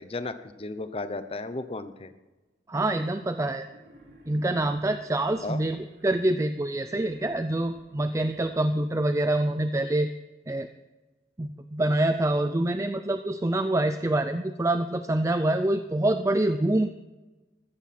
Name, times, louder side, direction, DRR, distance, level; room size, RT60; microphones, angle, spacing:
voice 1, 0.0-2.1 5.4-5.6, left 2 dB, 35° left, 11 dB, 0.8 m, -34 dB
voice 2, 2.7-3.7 4.3-10.1 10.5-10.7 11.4-16.9, right 1 dB, 20° right, 9 dB, 0.5 m, -26 dB
Wild animals, 3.6-6.1 6.6-9.1, right 1 dB, 75° right, 4.5 m, -54 dB
15.0 x 13.5 x 4.3 m, 1.1 s
head